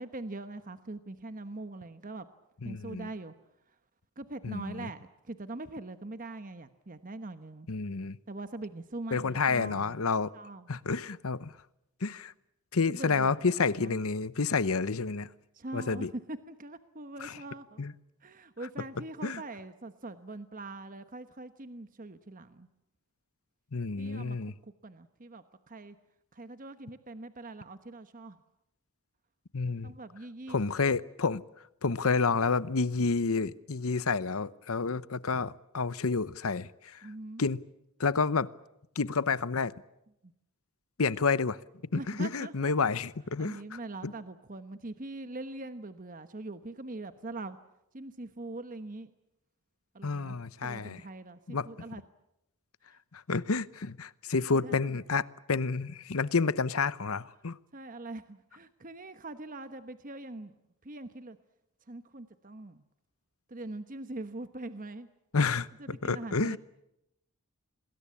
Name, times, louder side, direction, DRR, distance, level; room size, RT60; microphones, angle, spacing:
voice 1, 0.0-2.3 2.6-3.3 4.2-7.7 8.3-9.9 10.3-10.7 12.9-13.5 13.8-14.0 15.5-17.8 18.2-22.7 24.0-24.5 24.8-26.0 26.3-28.4 29.8-30.6 37.0-37.5 40.2-40.3 41.9-42.7 43.4-47.6 47.9-49.1 49.9-50.4 50.6-52.0 54.2-55.0 57.7-60.5 60.8-61.4 61.9-62.8 63.5-65.1 65.8-66.6, right 2 dB, 35° right, 1.1 m, -42 dB
voice 2, 2.6-3.1 4.4-4.9 7.7-8.2 9.1-10.3 10.7-11.5 12.0-12.3 12.7-15.3 15.7-16.1 17.2-17.4 17.8-17.9 19.2-19.4 23.7-24.5 29.5-29.9 30.5-31.4 31.8-37.0 37.4-37.6 38.0-38.5 39.0-39.7 41.0-41.6 41.9-44.1 50.0-51.0 51.5-51.7 53.1-57.6 65.3-66.6, left 4 dB, 70° left, 0.9 m, -29 dB
27.5 x 21.0 x 8.6 m
head